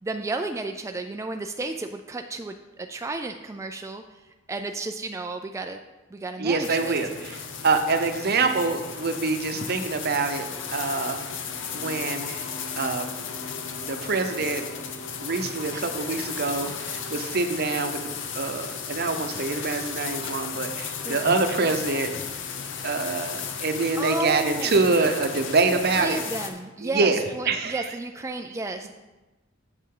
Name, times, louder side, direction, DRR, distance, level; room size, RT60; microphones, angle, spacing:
voice 1, 0.0-5.8 6.1-7.0 15.7-15.9 16.6-16.7 21.1-21.3 24.0-24.8 25.7-28.9, right 2 dB, 15° right, 5 dB, 0.3 m, -33 dB
voice 2, 6.4-11.2 11.7-12.5 12.8-13.1 13.8-14.6 15.2-18.0 18.3-22.1 22.8-26.2 26.8-27.2 27.5-27.9, right 3 dB, 55° right, 7 dB, 0.7 m, -25 dB
sound 1, 6.6-26.5, left 6 dB, 65° left, 0.9 m, -34 dB
8.4 x 7.3 x 3.8 m, 1.1 s
head